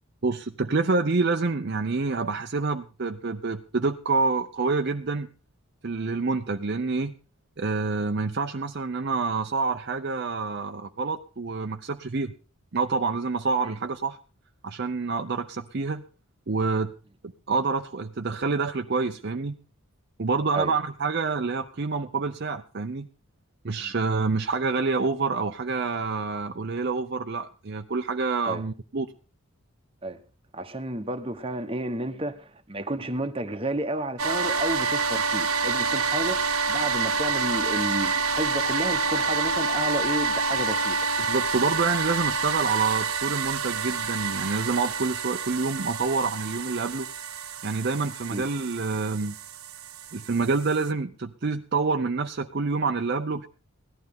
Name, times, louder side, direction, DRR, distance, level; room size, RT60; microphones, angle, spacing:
voice 1, 0.2-5.3 5.8-7.1 7.6-12.3 12.7-14.2 14.6-16.0 16.5-16.9 17.5-19.6 20.2-23.1 23.6-29.1 41.3-47.1 47.6-49.4 50.1-53.5, right 4 dB, 50° right, 0.6 m, -27 dB
voice 2, 30.5-36.4 36.7-41.0 48.3-48.4, right 1 dB, 25° right, 1.0 m, -31 dB
sound 1, 34.2-50.9, right 4 dB, 75° right, 1.0 m, -28 dB
17.0 x 12.0 x 3.6 m
head